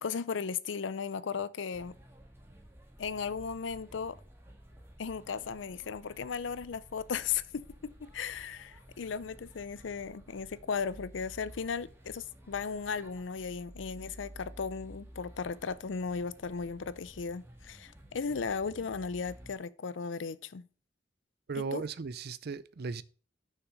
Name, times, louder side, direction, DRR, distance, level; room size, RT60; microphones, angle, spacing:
voice 1, 0.0-1.9 3.0-4.2 5.0-20.7 21.7-21.8, left 5 dB, 75° left, 0.5 m, -36 dB
sound 1, 1.7-19.6, equal, 15° right, 1.7 m, -53 dB
voice 2, 21.5-23.0, right 5 dB, 55° right, 0.5 m, -36 dB
6.5 x 6.1 x 6.2 m
head